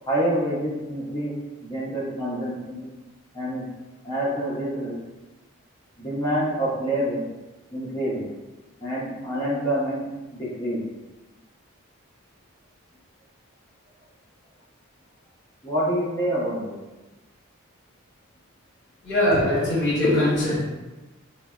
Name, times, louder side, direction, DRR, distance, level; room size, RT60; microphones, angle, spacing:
voice 1, 0.1-1.3 1.6-2.9 3.3-3.7 4.0-5.0 6.0-7.2 7.7-8.3 8.8-10.0 10.3-10.9 15.6-16.8, right 1 dB, 15° left, -7 dB, 0.6 m, -27 dB
voice 2, 19.0-20.6, left 1 dB, 50° left, -6 dB, 0.8 m, -21 dB
3.8 x 2.1 x 2.3 m, 1.1 s
head